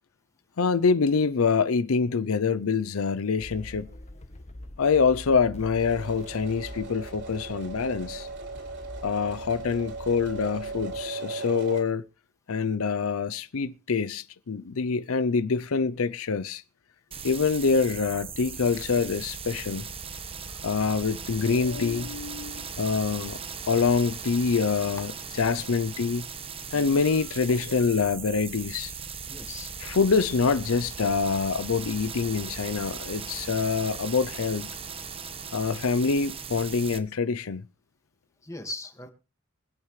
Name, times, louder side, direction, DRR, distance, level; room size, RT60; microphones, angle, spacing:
voice 1, 0.6-3.9 4.8-8.3 9.0-12.0 12.5-16.6 17.2-19.9 20.6-23.4 23.7-25.1 25.4-26.3 26.7-28.9 29.8-34.7 35.5-37.6, left 5 dB, 75° left, 0.6 m, -25 dB
sound 1, 3.4-11.0, left 1 dB, 30° left, 1.1 m, -44 dB
sound 2, 5.8-11.8, right 3 dB, 55° right, 4.0 m, -38 dB
sound 3, 17.1-37.0, right 6 dB, 25° right, 1.2 m, -38 dB
voice 2, 26.7-27.0 27.5-27.6 29.2-29.7 38.4-39.1, left 2 dB, 15° left, 1.9 m, -40 dB
24.5 x 8.8 x 3.2 m
head